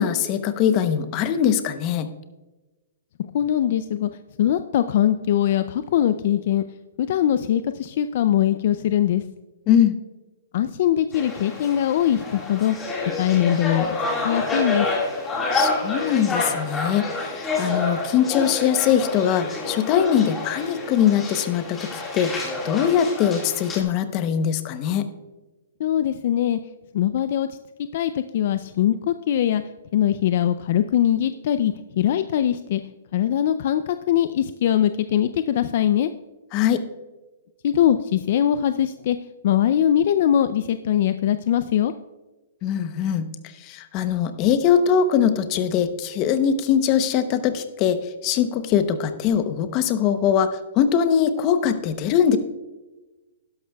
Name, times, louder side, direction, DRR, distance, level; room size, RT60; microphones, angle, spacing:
voice 1, 0.0-2.1 9.7-10.0 15.5-25.1 36.5-36.8 42.6-43.3 43.6-52.4, left 8 dB, 30° left, 10 dB, 0.8 m, -21 dB
voice 2, 3.3-4.1 4.4-6.6 7.0-9.2 10.5-12.8 13.2-14.0 14.2-14.9 25.8-26.6 26.9-27.5 27.9-29.6 29.9-32.8 33.1-36.1 37.6-39.2 39.4-41.9, left 10 dB, 50° left, 11 dB, 0.4 m, -21 dB
sound 1, 11.1-23.8, left 3 dB, 10° left, 1.9 m, -28 dB
12.0 x 11.5 x 2.3 m, 1.1 s
hypercardioid pair, 155°, 0 cm